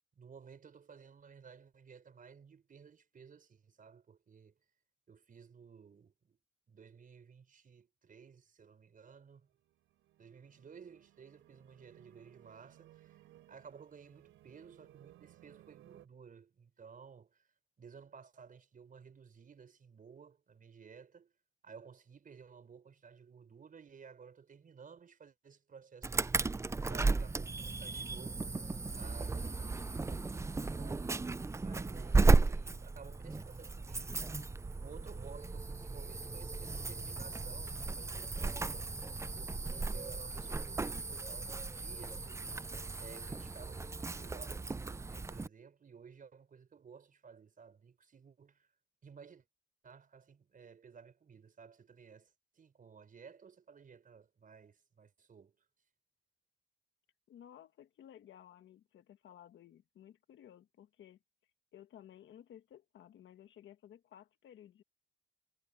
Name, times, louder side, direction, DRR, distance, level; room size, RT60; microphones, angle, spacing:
voice 1, 0.1-4.6 5.1-6.4 6.7-9.5 10.2-13.2 13.5-17.5 17.8-21.3 21.6-26.6 26.9-28.6 28.9-31.1 31.6-34.3 34.7-39.0 39.3-42.6 43.0-48.7 49.0-49.5 49.8-55.5, right 6 dB, 45° right, 5.0 m, -56 dB
sound 1, 9.5-16.1, right 14 dB, 85° right, 4.9 m, -62 dB
Insect / Alarm, 26.0-45.5, right 3 dB, 15° right, 0.5 m, -35 dB
voice 2, 57.3-61.2 61.7-64.8, left 10 dB, 70° left, 1.9 m, -56 dB
cardioid pair, 90°, 20 cm